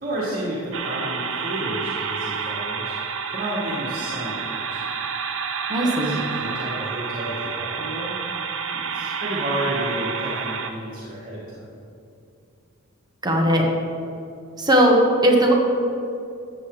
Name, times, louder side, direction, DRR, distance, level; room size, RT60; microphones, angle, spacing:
voice 1, 0.0-2.9 3.3-4.8 5.8-8.2 8.7-11.6, right 1 dB, 45° right, -7 dB, 1.9 m, -31 dB
sound 1, 0.7-10.7, right 6 dB, 65° right, 0.7 m, -29 dB
voice 2, 5.7-6.1 13.2-13.7 14.6-15.0 15.2-15.5, equal, 20° right, 0 dB, 1.2 m, -18 dB
13.5 x 7.6 x 3.3 m, 2.6 s
head